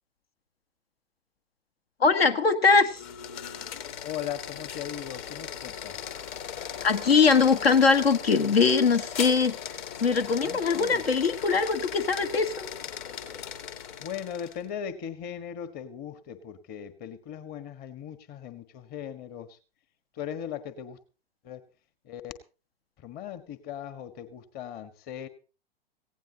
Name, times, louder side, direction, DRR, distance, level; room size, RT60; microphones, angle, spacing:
voice 1, 2.0-3.0 6.8-9.6 10.0-12.7, left 5 dB, 75° left, 10 dB, 1.7 m, -22 dB
sound 1, 2.9-14.7, left 8 dB, 50° left, 2.4 m, -38 dB
voice 2, 4.0-6.0 10.4-11.0 14.0-19.6 20.1-21.0 21.4-21.6 22.0-22.3 23.0-25.3, left 9 dB, 30° left, 11 dB, 1.5 m, -38 dB
18.5 x 16.5 x 2.9 m, 0.33 s
figure-of-eight pair, 110°, 30 cm